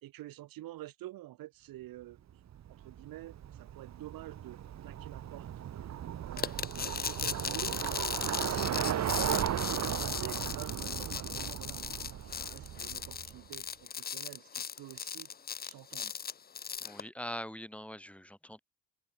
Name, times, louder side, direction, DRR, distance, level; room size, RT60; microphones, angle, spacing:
voice 1, 0.0-2.2 2.7-4.6 4.8-5.5 5.8-5.9 6.2-7.9 8.3-15.3 15.6-16.1, right 15 dB, 65° right, 3.8 m, -48 dB
Bicycle, 2.5-13.4, right 10 dB, 45° right, 1.8 m, -36 dB
sound 1, 6.4-17.0, left 7 dB, 25° left, 0.8 m, -38 dB
voice 2, 8.6-9.0 9.3-9.4 16.8-18.6, equal, 5° left, 3.7 m, -43 dB
supercardioid pair, 75°, 37 cm